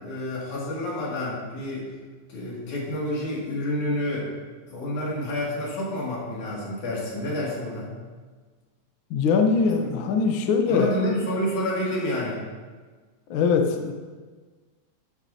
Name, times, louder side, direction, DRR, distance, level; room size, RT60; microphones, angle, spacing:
voice 1, 0.0-1.9 2.3-4.3 4.7-7.9 9.8-9.9 10.7-12.4, left 1 dB, 70° left, -5 dB, 3.8 m, -29 dB
voice 2, 9.1-11.0 13.3-13.9, left 5 dB, 85° left, 3 dB, 1.1 m, -22 dB
12.5 x 9.4 x 2.8 m, 1.4 s
omnidirectional pair, 3.6 m